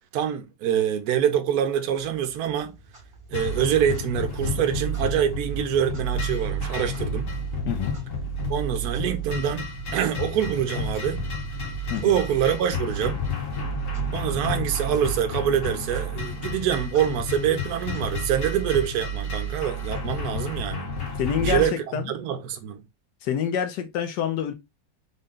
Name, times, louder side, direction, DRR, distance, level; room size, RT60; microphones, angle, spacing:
voice 1, 0.1-2.8 3.3-7.3 8.5-11.2 12.0-13.2 14.1-20.9 21.4-22.9, right 9 dB, 65° right, 1.0 m, -25 dB
Clock, 1.9-20.6, right 1 dB, 25° right, 0.8 m, -47 dB
sound 1, 3.3-21.7, equal, 50° left, 1.2 m, -30 dB
voice 2, 7.6-8.0 11.9-12.2 21.2-22.1 23.2-24.5, left 8 dB, 70° left, 1.3 m, -27 dB
3.9 x 2.2 x 3.6 m
omnidirectional pair, 1.9 m